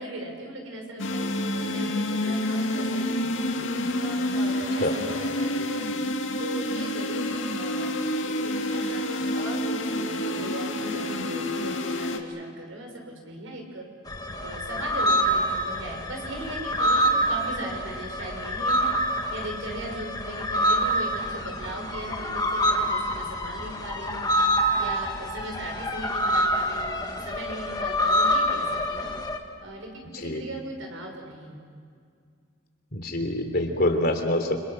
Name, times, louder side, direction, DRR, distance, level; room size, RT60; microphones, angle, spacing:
voice 1, 0.0-3.5 3.9-6.1 6.4-13.9 14.4-18.9 19.3-24.2 24.7-29.1 29.6-31.6, right 1 dB, 85° right, 2 dB, 6.1 m, -38 dB
sound 1, 1.0-12.2, left 1 dB, 75° left, 2.3 m, -28 dB
sound 2, 14.1-29.4, equal, 20° left, 1.8 m, -26 dB
voice 2, 32.9-34.6, left 1 dB, 50° left, 4 dB, 3.3 m, -25 dB
29.0 x 27.0 x 6.5 m, 2.2 s
head